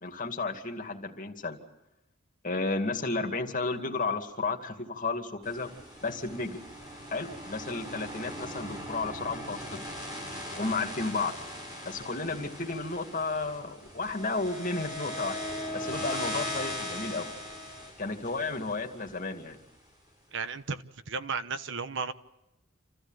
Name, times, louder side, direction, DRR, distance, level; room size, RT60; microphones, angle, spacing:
voice 1, 0.0-1.6 2.4-5.7 6.0-6.6 7.1-9.8 10.5-11.3 11.9-15.5 15.7-17.3 18.0-19.6, left 3 dB, 40° left, 4 dB, 2.4 m, -33 dB
sound 1, 5.4-19.6, left 1 dB, 20° right, 7.5 m, -39 dB
voice 2, 20.3-22.1, right 5 dB, 65° right, 12 dB, 1.0 m, -34 dB
27.5 x 15.0 x 9.1 m, 0.94 s
head